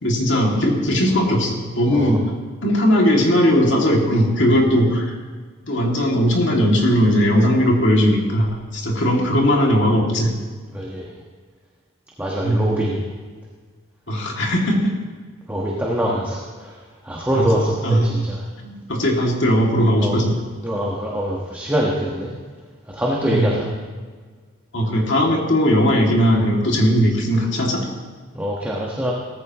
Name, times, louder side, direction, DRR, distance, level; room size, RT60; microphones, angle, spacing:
voice 1, 0.0-2.2 2.6-5.0 5.7-10.3 12.4-12.7 14.1-14.9 17.3-18.2 18.6-20.3 23.2-23.5 24.7-27.8, equal, 60° left, -1 dB, 2.6 m, -18 dB
voice 2, 1.9-2.2 10.7-11.1 12.2-13.0 15.5-16.7 17.0-18.4 20.0-20.2 20.6-22.3 22.9-23.7 28.3-29.1, equal, 10° right, -4 dB, 1.5 m, -24 dB
18.0 x 15.0 x 3.1 m, 1.5 s
head